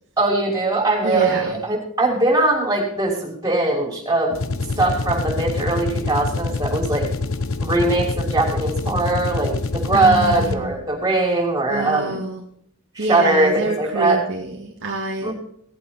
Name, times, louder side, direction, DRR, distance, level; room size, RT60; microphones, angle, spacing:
voice 1, 0.2-4.4 4.8-7.1 7.6-12.2 12.9-14.2 15.2-15.3, right 2 dB, 15° right, -2 dB, 5.9 m, -21 dB
voice 2, 1.0-1.6 9.9-10.8 11.7-12.5 13.0-15.3, right 2 dB, 60° right, -1 dB, 2.2 m, -26 dB
sound 1, 4.3-10.9, left 3 dB, 65° left, 1.0 m, -26 dB
18.5 x 8.7 x 4.5 m, 0.67 s
head